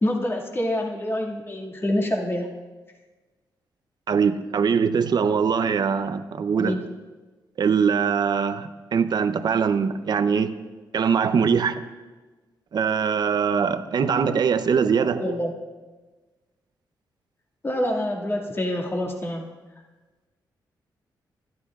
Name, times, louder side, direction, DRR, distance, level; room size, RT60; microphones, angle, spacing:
voice 1, 0.0-2.5 6.6-6.8 15.0-15.5 17.6-19.5, left 1 dB, 30° left, -1 dB, 2.2 m, -26 dB
voice 2, 4.1-6.8 7.6-10.5 10.9-11.8 12.7-15.3, right 6 dB, 60° right, 9 dB, 0.7 m, -22 dB
20.0 x 12.5 x 2.5 m, 1.3 s
cardioid pair, 65°, 8 cm